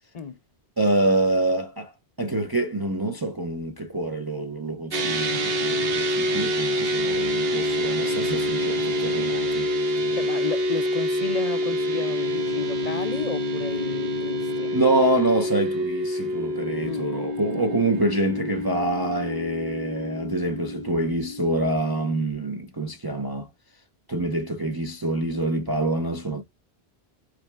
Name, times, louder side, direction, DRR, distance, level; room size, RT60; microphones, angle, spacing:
voice 1, 0.8-1.9 2.2-9.7 14.7-23.5 24.1-26.4, right 2 dB, 25° right, 0.7 m, -26 dB
sound 1, 4.9-22.3, equal, 65° right, 1.3 m, -27 dB
voice 2, 9.9-14.7 16.8-17.1, left 6 dB, 50° left, 0.5 m, -33 dB
5.0 x 4.7 x 2.2 m
omnidirectional pair, 1.1 m